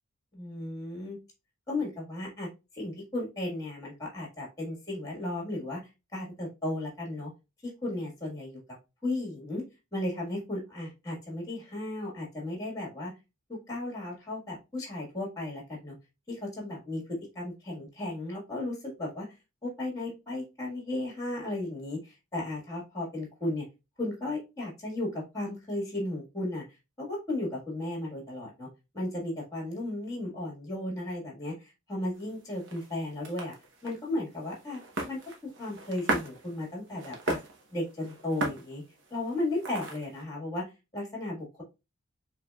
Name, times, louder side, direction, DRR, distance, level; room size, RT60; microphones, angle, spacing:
voice 1, 0.3-1.2 1.7-2.5 2.7-5.8 6.1-7.3 7.6-8.6 9.0-9.6 9.9-13.1 13.5-15.9 16.3-17.0 17.3-19.3 19.6-23.7 24.0-26.6 27.0-28.7 28.9-33.5 33.8-34.8 35.1-37.4 37.7-38.8 39.1-40.6 40.9-41.6, left 1 dB, 15° left, -1 dB, 1.6 m, -35 dB
sound 1, 32.1-40.2, right 2 dB, 55° right, 0.9 m, -38 dB
4.9 x 3.2 x 2.3 m, 0.25 s
head